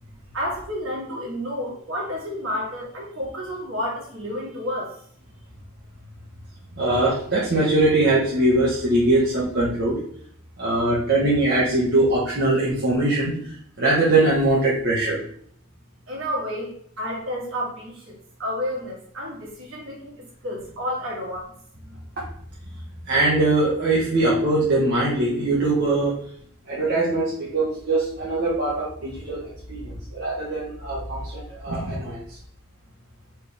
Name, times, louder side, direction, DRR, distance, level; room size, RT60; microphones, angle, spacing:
voice 1, 0.3-4.9 16.1-21.5 21.8-21.9, equal, 65° right, -3 dB, 1.9 m, -31 dB
voice 2, 6.8-10.0 10.6-15.2 23.1-26.2 26.7-32.2, right 2 dB, 50° right, -8 dB, 1.1 m, -22 dB
4.4 x 3.5 x 3.4 m, 0.62 s
head